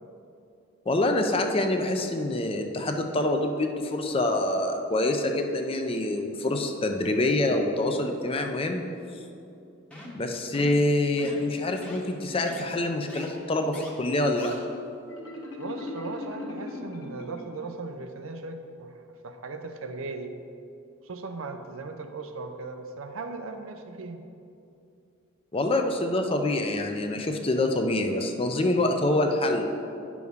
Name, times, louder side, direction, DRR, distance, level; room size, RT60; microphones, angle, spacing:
voice 1, 0.9-8.8 10.1-14.5 25.5-29.6, left 2 dB, 25° left, 4 dB, 0.5 m, -26 dB
sound 1, 9.9-10.2 10.5-10.8 11.2-11.5 11.8-12.0 12.5-12.6 13.1-13.3 13.7-13.9 14.4-14.5, left 1 dB, 5° left, 0.9 m, -41 dB
Marimba xylophone, 15.1-17.8, left 2 dB, 65° left, 1.4 m, -39 dB
voice 2, 15.6-18.9 19.2-20.3 21.0-24.2, right 3 dB, 80° right, 6 dB, 0.6 m, -38 dB
9.6 x 6.1 x 3.6 m, 2.6 s
head